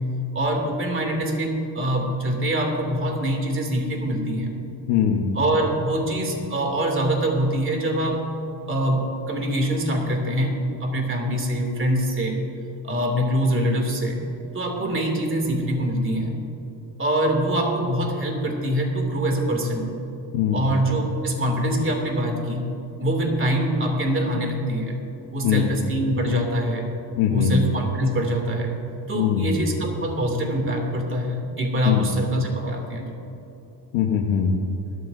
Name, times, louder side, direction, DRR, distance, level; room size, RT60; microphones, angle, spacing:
voice 1, 0.3-4.5 5.3-8.3 8.6-12.4 12.8-14.3 14.5-16.3 17.0-19.9 20.5-22.7 23.0-24.9 25.3-26.9 27.3-28.8 29.1-33.1, right 1 dB, 25° right, 1 dB, 2.7 m, -24 dB
voice 2, 4.9-5.3 20.3-20.7 25.4-25.8 27.2-27.6 29.1-29.5 31.8-32.1 33.9-34.6, left 8 dB, 85° left, 0 dB, 1.3 m, -21 dB
20.5 x 13.0 x 2.7 m, 2.9 s
cardioid pair, 105°, 44 cm